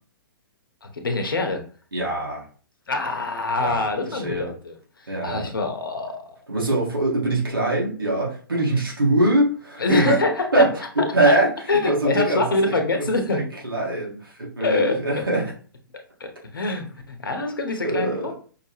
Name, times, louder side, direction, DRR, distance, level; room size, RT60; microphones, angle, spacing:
voice 1, 0.8-1.6 2.9-6.4 9.8-10.5 11.3-11.4 11.7-13.4 14.6-15.0 16.2-18.3, left 2 dB, 70° left, 5 dB, 0.9 m, -25 dB
voice 2, 1.9-2.5 3.6-4.5 5.1-5.5 6.5-10.2 10.5-15.5 17.8-18.3, right 1 dB, 80° right, -4 dB, 1.7 m, -23 dB
5.4 x 2.3 x 3.0 m, 0.41 s
figure-of-eight pair, 120°, 12 cm